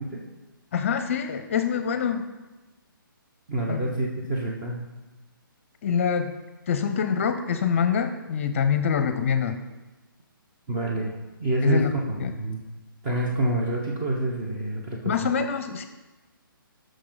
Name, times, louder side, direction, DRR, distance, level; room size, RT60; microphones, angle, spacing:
voice 1, 0.7-2.3 3.7-3.9 5.8-6.3 6.7-9.6 11.6-11.9 12.2-12.3 15.0-15.9, left 7 dB, 35° left, 9 dB, 0.6 m, -25 dB
voice 2, 3.5-4.8 10.7-11.1 11.4-12.6 13.0-15.1, right 1 dB, 25° right, -3 dB, 1.2 m, -27 dB
11.5 x 6.4 x 4.0 m, 1.1 s
hypercardioid pair, 160°, 12 cm